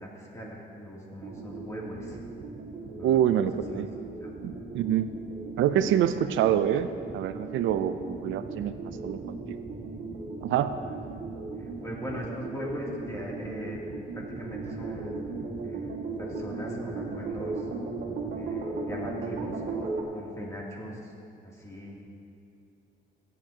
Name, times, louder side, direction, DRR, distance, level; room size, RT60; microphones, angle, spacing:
voice 1, 0.0-2.2 3.0-3.9 4.2-4.4 10.8-11.0 11.6-13.8 14.1-15.3 15.6-17.6 18.3-19.6 20.1-21.1 21.4-22.1, equal, 15° left, -4 dB, 2.7 m, -40 dB
sound 1, 1.2-20.0, right 3 dB, 60° right, 1.9 m, -37 dB
voice 2, 3.0-3.9 4.4-5.1 5.6-6.9 7.1-8.7 9.0-9.6 10.4-10.7, right 10 dB, 80° right, 11 dB, 0.5 m, -26 dB
16.5 x 9.2 x 2.8 m, 2.6 s
cardioid pair, 90°, 20 cm